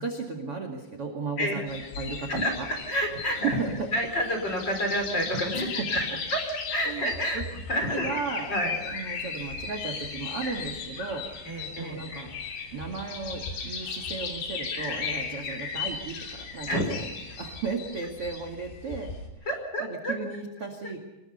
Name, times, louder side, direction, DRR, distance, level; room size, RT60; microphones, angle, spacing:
voice 1, 0.0-2.3 2.6-2.7 3.3-3.7 6.1-6.2 6.9-7.4 7.9-8.5 8.8-11.2 11.8-12.3 12.7-17.1 17.3-19.5 19.8-21.0, right 4 dB, 40° right, 5 dB, 2.4 m, -35 dB
sound 1, 1.7-19.3, left 5 dB, 85° left, 5.8 m, -36 dB
voice 2, 2.3-3.6 3.9-6.0 6.3-6.4 6.7-7.4 7.7-8.1 8.5-8.8 11.4-12.3 16.7-16.9 19.5-20.1, equal, 25° left, 4 dB, 5.1 m, -29 dB
26.5 x 21.0 x 5.7 m, 1.0 s
omnidirectional pair, 5.1 m